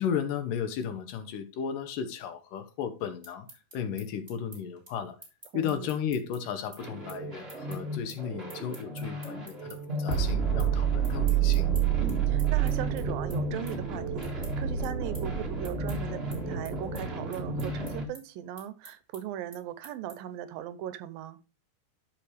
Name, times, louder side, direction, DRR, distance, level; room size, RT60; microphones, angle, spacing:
voice 1, 0.0-3.5 3.7-5.2 5.5-11.7, left 8 dB, 75° left, 2.4 m, -34 dB
sound 1, 3.0-9.8 10.1-10.7 11.0-20.4, right 1 dB, 10° right, 3.3 m, -50 dB
voice 2, 5.5-5.9 12.0-21.4, right 11 dB, 85° right, 2.4 m, -38 dB
sound 2, 6.8-18.0, right 6 dB, 40° right, 0.8 m, -30 dB
13.5 x 5.1 x 3.3 m
omnidirectional pair, 4.1 m